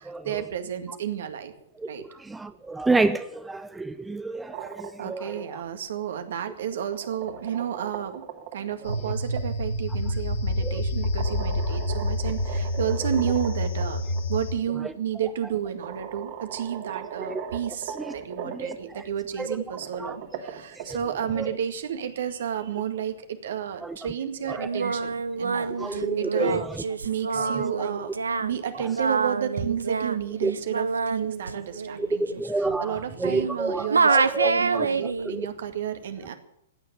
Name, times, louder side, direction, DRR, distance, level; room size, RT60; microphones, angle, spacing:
voice 1, 0.0-1.5 1.9-2.0 5.0-8.2 8.5-14.0 14.3-26.7 27.0-28.1 28.4-36.3, right 9 dB, 60° right, 2.0 m, -31 dB
voice 2, 2.3-5.3 10.6-10.8 17.3-17.5 18.5-18.7 19.4-19.5 20.0-20.2 20.9-21.0 21.4-21.5 23.8-23.9 24.6-24.7 25.8-26.6 30.4-30.5 32.0-34.9 35.3-35.4, right 3 dB, 5° right, 0.7 m, -28 dB
sound 1, 4.3-5.4 6.6-9.4 11.0-13.8 14.2-14.3 15.3-15.4 15.8-18.8 19.6-21.3, right 9 dB, 45° right, 2.6 m, -39 dB
sound 2, 8.8-14.5, left 1 dB, 65° left, 3.8 m, -28 dB
Singing, 24.6-33.6 33.9-35.3, right 4 dB, 80° right, 0.9 m, -27 dB
16.0 x 9.4 x 9.2 m
figure-of-eight pair, 110°, 0 cm